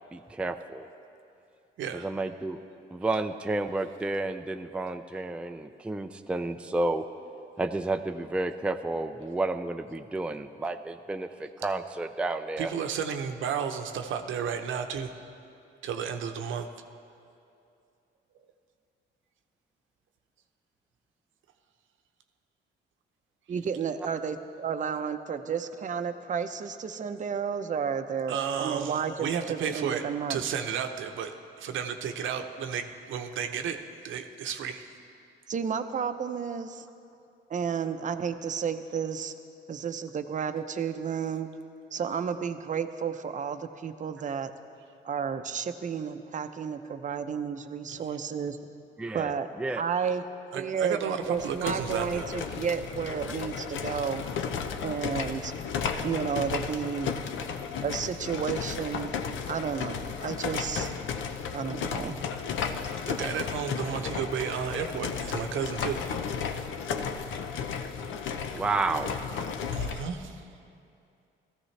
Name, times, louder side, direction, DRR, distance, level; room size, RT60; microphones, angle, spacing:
voice 1, 0.1-0.9 2.0-2.6 2.9-7.0 7.6-12.7 49.0-49.3 49.6-49.8 68.5-69.1, right 2 dB, 5° right, 7 dB, 0.4 m, -31 dB
voice 2, 1.8-2.1 12.6-15.2 15.8-16.7 28.3-30.0 30.3-31.3 31.6-33.8 34.0-34.9 47.9-48.0 50.5-52.3 60.5-60.7 62.8-66.2 69.7-70.4, right 7 dB, 75° right, 6 dB, 0.8 m, -33 dB
voice 3, 23.5-30.4 35.5-36.9 37.5-39.3 39.7-41.5 41.9-44.5 45.0-48.7 49.1-49.5 49.8-50.2 50.5-54.2 54.8-55.5 56.0-57.1 57.8-59.2 59.5-60.9 61.5-62.4, right 7 dB, 40° right, 8 dB, 0.7 m, -32 dB
sound 1, 51.2-70.1, left 6 dB, 75° left, 0.7 m, -34 dB
16.5 x 14.0 x 3.3 m, 2.6 s
cardioid pair, 90°, 20 cm